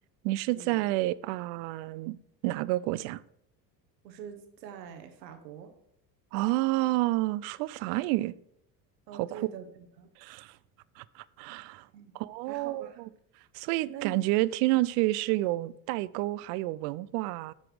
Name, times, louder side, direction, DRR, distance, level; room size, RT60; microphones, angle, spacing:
voice 1, 0.2-2.2 2.4-3.2 6.3-8.3 9.1-9.5 10.2-10.6 11.0-11.9 12.1-13.1 13.5-17.5, right 18 dB, 60° right, 0.5 m, -29 dB
voice 2, 4.0-5.7 9.1-10.1 11.9-12.1 12.5-13.0 13.9-14.1, right 8 dB, 80° right, 1.3 m, -44 dB
8.8 x 5.9 x 4.9 m
hypercardioid pair, 65°, 50 cm